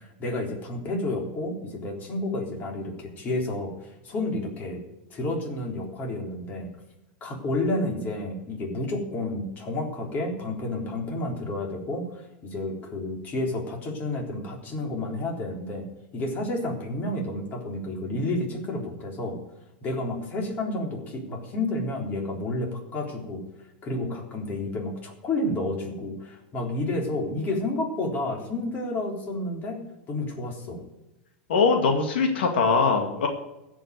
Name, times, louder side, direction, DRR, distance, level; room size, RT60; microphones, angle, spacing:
voice 1, 0.0-4.8 5.1-6.7 7.2-15.9 16.1-19.4 19.8-23.4 23.8-29.8 30.1-30.8, left 2 dB, 30° left, 1 dB, 3.7 m, -30 dB
voice 2, 31.5-33.3, left 4 dB, 85° left, 4 dB, 2.0 m, -22 dB
16.0 x 6.1 x 9.3 m, 0.96 s
supercardioid pair, 130°, 5 cm